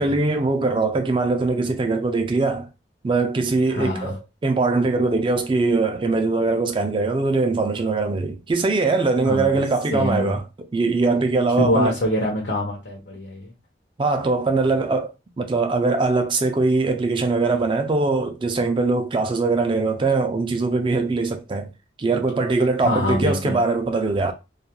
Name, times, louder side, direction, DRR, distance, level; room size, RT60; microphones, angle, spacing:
voice 1, 0.0-2.7 3.0-10.4 10.7-11.9 14.0-15.1 15.4-21.7 22.0-24.3, right 3 dB, 30° right, 0.3 m, -21 dB
voice 2, 3.7-4.1 9.2-9.6 9.9-10.4 11.6-13.5 22.8-23.6, left 1 dB, 75° left, 0.7 m, -24 dB
2.3 x 2.1 x 2.9 m
head